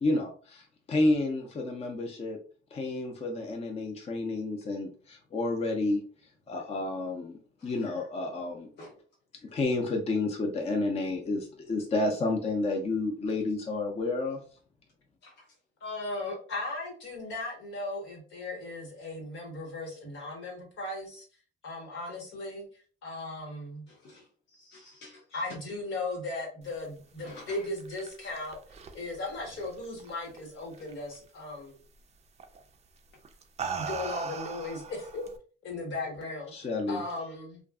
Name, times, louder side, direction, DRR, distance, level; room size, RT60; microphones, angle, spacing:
voice 1, 0.0-2.4 2.7-6.0 6.5-8.7 9.5-14.4 36.5-37.0, left 2 dB, 30° left, 2 dB, 0.5 m, -30 dB
voice 2, 15.2-15.6 23.9-25.2 27.2-27.7, left 2 dB, 60° left, -3 dB, 0.8 m, -50 dB
voice 3, 15.8-21.2 21.6-22.7 23.0-23.8 25.3-28.6 28.9-31.8 33.7-35.2 35.6-36.5 36.9-37.6, left 2 dB, 80° left, -1 dB, 1.3 m, -37 dB
sound 1, 27.5-30.4 30.7-31.2 32.4-32.6 33.2-35.4, right 6 dB, 35° right, 0.3 m, -39 dB
2.5 x 2.3 x 2.3 m, 0.41 s
cardioid pair, 90°, 20 cm